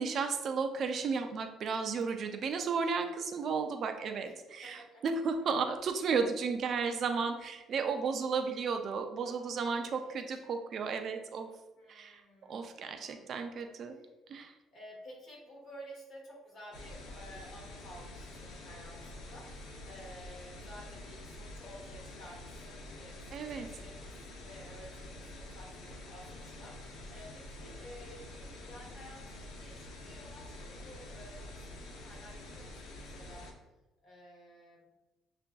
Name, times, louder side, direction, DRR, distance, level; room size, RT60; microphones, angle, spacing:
voice 1, 0.0-11.5 11.9-14.0 14.3-14.5 23.3-23.7, right 5 dB, 50° right, 6 dB, 0.3 m, -34 dB
voice 2, 4.6-5.0 5.4-5.5 9.2-10.4 11.7-12.7 13.0-14.1 14.7-23.2 23.5-33.5 34.0-34.9, equal, 45° left, -2 dB, 1.4 m, -53 dB
sound 1, 16.7-33.5, left 1 dB, 85° left, 0.6 m, -47 dB
6.6 x 2.5 x 2.2 m, 1.0 s
cardioid pair, 140°, 0 cm